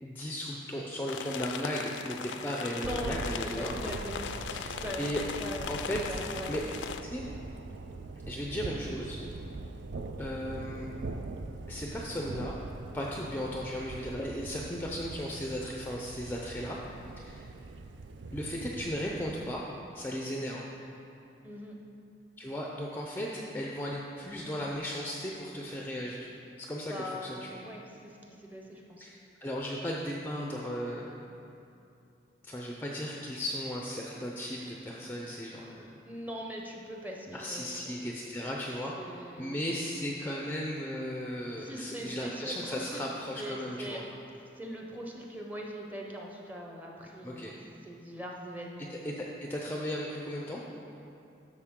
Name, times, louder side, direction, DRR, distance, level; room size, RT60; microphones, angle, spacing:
voice 1, 0.0-3.7 4.5-5.2 5.7-6.0 6.5-6.6 7.1-7.3 8.3-9.2 10.2-10.9 11.7-12.6 12.9-16.8 17.2-17.5 18.3-19.6 19.9-20.7 22.4-26.3 26.6-27.6 29.0-31.1 32.4-35.9 37.3-44.0 47.2-47.5 48.9-50.6, equal, 10° left, -2 dB, 0.5 m, -36 dB
sound 1, 1.1-7.0, left 6 dB, 75° left, 0.4 m, -39 dB
voice 2, 2.8-3.2 3.5-5.7 6.0-6.5 21.4-21.7 26.9-29.1 36.0-37.9 39.0-39.6 41.6-43.0 43.4-44.0 44.3-47.6 47.8-48.9, equal, 10° right, -1 dB, 0.8 m, -41 dB
Thunder, 2.8-19.5, right 3 dB, 70° right, 0.4 m, -42 dB
11.5 x 6.7 x 3.7 m, 2.7 s
head